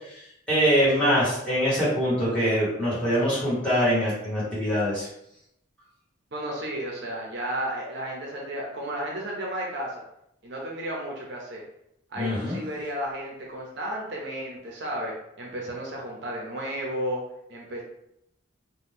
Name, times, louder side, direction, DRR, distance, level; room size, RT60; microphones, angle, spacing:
voice 1, 0.5-5.1 12.1-12.6, equal, 5° left, -11 dB, 1.5 m, -23 dB
voice 2, 6.3-10.0 10.4-11.6 12.1-17.2 17.5-17.8, right 1 dB, 55° right, -2 dB, 0.6 m, -33 dB
2.7 x 2.2 x 3.6 m, 0.78 s
head